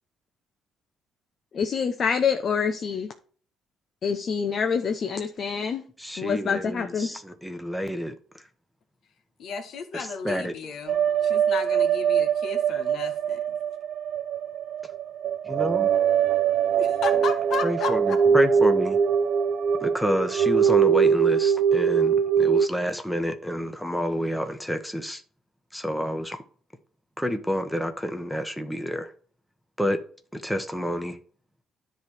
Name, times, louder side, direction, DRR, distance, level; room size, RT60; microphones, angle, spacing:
voice 1, 1.5-3.1 4.0-5.9 6.2-7.1, left 6 dB, 50° left, 0.8 m, -26 dB
voice 2, 6.0-8.1 9.9-10.5 15.5-15.9 17.6-19.0 19.8-25.2 25.7-26.4 27.2-29.1 29.8-30.0 30.3-31.2, equal, ahead, 1.1 m, -28 dB
voice 3, 9.4-13.4 16.8-18.2, left 5 dB, 65° left, 1.7 m, -34 dB
sound 1, 10.9-22.7, right 7 dB, 65° right, 0.5 m, -22 dB
10.5 x 3.4 x 6.4 m
cardioid pair, 100°, 0 cm